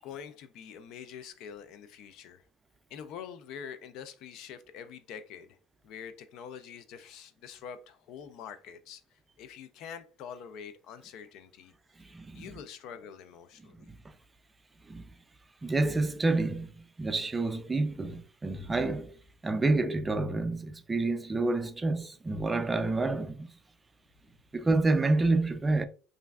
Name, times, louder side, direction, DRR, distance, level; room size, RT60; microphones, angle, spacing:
voice 1, 0.0-2.4 2.9-5.6 5.8-11.7 12.3-13.9, left 7 dB, 65° left, 0.4 m, -45 dB
voice 2, 12.0-12.4 13.9-14.0 14.9-15.0 15.6-19.1 19.4-23.5 24.5-25.9, right 2 dB, 20° right, 0.3 m, -28 dB
3.1 x 2.5 x 2.2 m
hypercardioid pair, 80°, 0 cm